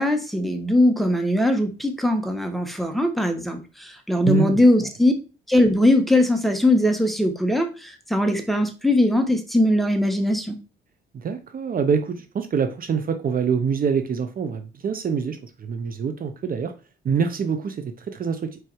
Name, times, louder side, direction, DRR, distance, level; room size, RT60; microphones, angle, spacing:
voice 1, 0.0-5.1 5.5-10.6, left 1 dB, ahead, 1.2 m, -20 dB
voice 2, 4.2-4.6 11.1-16.7 17.0-18.6, right 6 dB, 45° right, 0.8 m, -25 dB
4.7 x 4.6 x 4.6 m
cardioid pair, 90°, 20 cm